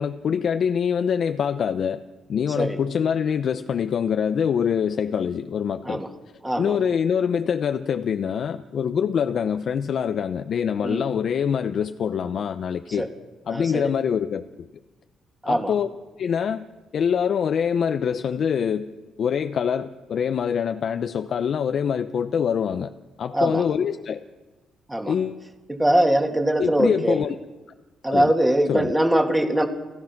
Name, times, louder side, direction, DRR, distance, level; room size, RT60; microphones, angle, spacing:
voice 1, 0.0-2.0 2.3-6.0 6.6-13.1 13.5-14.7 15.5-15.9 16.2-16.6 16.9-18.9 19.2-22.9 23.2-24.2 25.1-25.4 26.6-27.3 28.1-28.3 28.7-28.9, left 7 dB, 60° left, 0.8 m, -24 dB
voice 2, 6.4-6.8 10.8-11.0 13.0-13.1 13.5-13.9 15.4-15.7 23.3-23.6 24.9-25.1 25.7-27.2 28.0-29.7, right 1 dB, 10° right, 2.4 m, -22 dB
29.5 x 15.0 x 6.0 m
cardioid pair, 90°, 0 cm